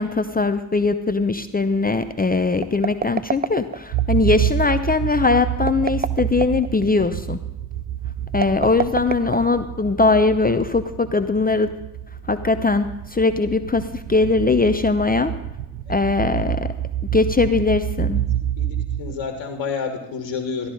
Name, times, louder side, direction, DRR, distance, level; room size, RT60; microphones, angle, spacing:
voice 1, 0.0-7.4 8.3-11.7 12.3-15.3 15.9-16.7 17.1-18.2, left 3 dB, 20° left, 10 dB, 0.7 m, -20 dB
sound 1, 2.6-4.0 5.6-6.7 8.3-9.9, right 6 dB, 20° right, 0.5 m, -27 dB
sound 2, 3.9-19.6, right 11 dB, 85° right, 0.7 m, -28 dB
voice 2, 18.6-20.7, left 5 dB, 70° left, 4 dB, 1.6 m, -29 dB
13.0 x 13.0 x 4.0 m, 1.0 s
hypercardioid pair, 45°, 46 cm